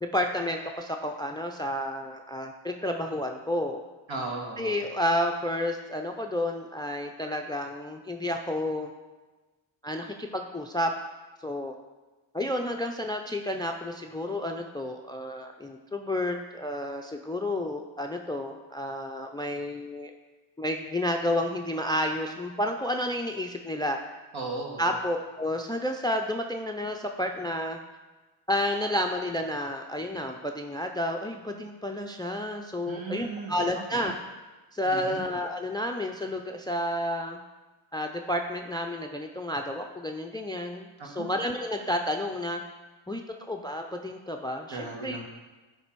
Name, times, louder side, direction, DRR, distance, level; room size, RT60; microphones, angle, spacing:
voice 1, 0.0-3.8 4.6-8.9 9.8-10.9 11.4-11.7 12.3-20.1 20.6-24.0 24.8-27.8 28.5-34.1 34.7-37.4 37.9-42.6 43.1-43.2 43.5-45.2, left 1 dB, 10° left, 4 dB, 0.3 m, -31 dB
voice 2, 4.1-4.7 24.3-24.9 32.8-34.1 34.8-35.2 41.0-41.3 44.7-45.2, right 3 dB, 65° right, -1 dB, 1.9 m, -36 dB
10.0 x 3.4 x 4.6 m, 1.2 s
cardioid pair, 90°, 49 cm